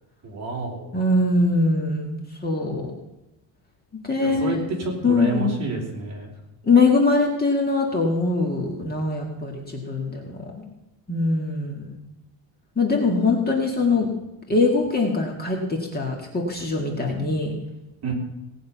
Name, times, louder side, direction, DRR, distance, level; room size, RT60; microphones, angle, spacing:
voice 1, 0.2-0.9 4.2-6.3 18.0-18.1, right 3 dB, 35° right, -1 dB, 3.6 m, -29 dB
voice 2, 0.9-2.9 4.0-4.6 5.0-5.6 6.6-10.6 11.1-12.0 12.8-14.1 14.5-17.5, left 3 dB, 20° left, 0 dB, 1.8 m, -22 dB
18.0 x 9.2 x 5.7 m, 0.95 s
cardioid pair, 175°, 45 cm